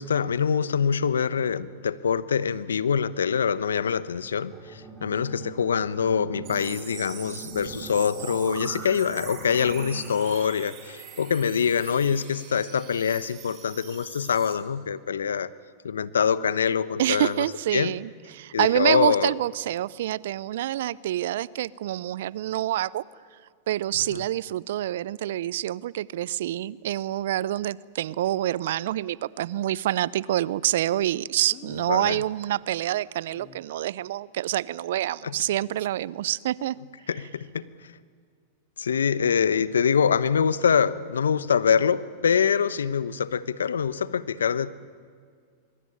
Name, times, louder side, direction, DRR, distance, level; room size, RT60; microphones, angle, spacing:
voice 1, 0.0-15.5 15.8-17.4 17.7-17.9 18.5-19.3 24.1-24.2 31.9-32.2 35.2-35.3 37.1-37.9 38.8-44.7, left 7 dB, 85° left, 17 dB, 0.9 m, -25 dB
sound 1, 4.5-10.0, right 6 dB, 10° right, 7.0 m, -43 dB
sound 2, 6.4-14.5, right 7 dB, 40° right, 5.9 m, -42 dB
voice 2, 17.0-23.0 23.7-36.8, right 13 dB, 70° right, 22 dB, 0.6 m, -27 dB
Speech, 26.2-26.3 31.5-32.1 33.3-33.6, left 10 dB, 50° left, 2.0 m, -49 dB
23.5 x 23.0 x 9.9 m, 2.1 s
hypercardioid pair, 100°, 0 cm